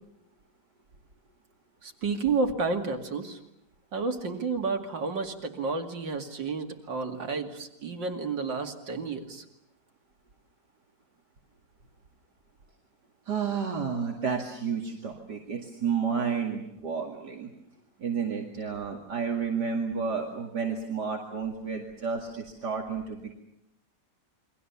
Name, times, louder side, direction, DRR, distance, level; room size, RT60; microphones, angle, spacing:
voice 1, 1.8-3.4 3.9-9.4, right 4 dB, 90° right, 4 dB, 3.1 m, -31 dB
voice 2, 13.3-17.5 18.0-23.3, right 6 dB, 65° right, 1 dB, 2.8 m, -31 dB
29.0 x 23.0 x 7.1 m, 0.83 s
omnidirectional pair, 1.9 m